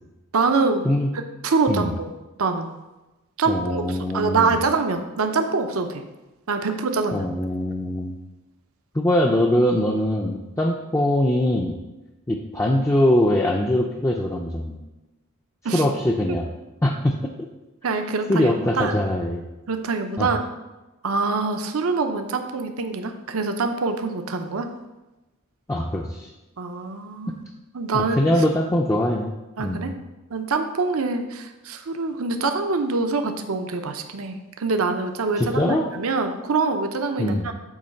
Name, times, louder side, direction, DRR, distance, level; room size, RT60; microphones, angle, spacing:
voice 1, 0.3-0.9 1.4-2.1 2.4-2.7 3.4-6.0 6.5-7.3 15.6-15.8 17.8-19.0 19.7-20.4 21.0-24.7 26.6-27.4 27.7-28.2 29.6-29.9 30.3-37.5, right 4 dB, 75° right, 7 dB, 0.7 m, -25 dB
voice 2, 3.5-4.5 7.1-8.2 8.9-11.8 12.3-14.8 15.7-16.5 16.8-17.3 18.3-19.4 20.2-20.3 25.7-26.3 27.9-29.3 29.6-29.9 35.4-35.8 37.2-37.5, left 1 dB, 15° left, 0 dB, 0.5 m, -22 dB
8.6 x 3.2 x 6.4 m, 1.0 s
head